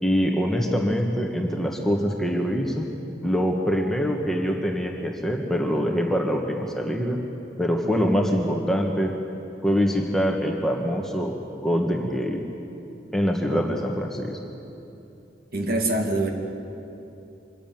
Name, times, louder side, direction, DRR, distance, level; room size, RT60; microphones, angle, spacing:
voice 1, 0.0-2.9 3.2-7.2 7.6-9.1 9.6-12.4 13.1-14.4, equal, ahead, 0 dB, 1.5 m, -24 dB
voice 2, 15.5-16.3, right 2 dB, 50° right, 2 dB, 2.3 m, -24 dB
25.0 x 14.5 x 9.3 m, 2.8 s
head